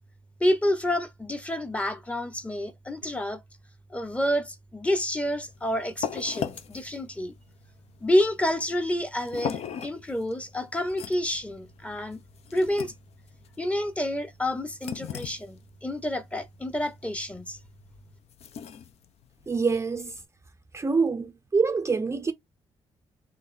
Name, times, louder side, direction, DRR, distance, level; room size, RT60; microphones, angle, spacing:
voice 1, 0.4-3.4 3.9-7.3 8.0-12.2 12.5-12.9 13.6-17.6, left 1 dB, 10° left, 0.7 m, -28 dB
sound 1, 5.3-20.2, left 8 dB, 70° left, 0.5 m, -40 dB
voice 2, 19.5-20.2 20.7-22.3, right 4 dB, 25° right, 0.4 m, -25 dB
3.8 x 3.1 x 2.5 m
cardioid pair, 85°, 11 cm